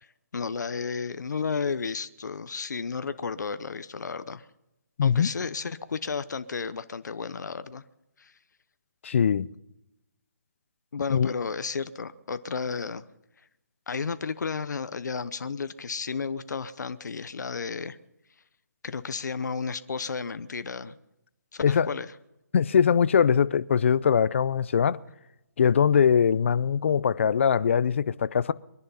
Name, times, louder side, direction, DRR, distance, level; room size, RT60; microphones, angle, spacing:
voice 1, 0.3-4.5 5.0-7.8 8.2-8.3 10.9-13.0 13.9-18.0 18.8-21.0 21.5-22.1, left 5 dB, 80° left, 0.8 m, -33 dB
voice 2, 5.0-5.3 9.0-9.5 11.1-11.3 21.6-22.0 22.5-25.0 25.6-28.5, left 7 dB, 45° left, 0.5 m, -22 dB
23.5 x 11.0 x 5.6 m
hypercardioid pair, 170°, 9 cm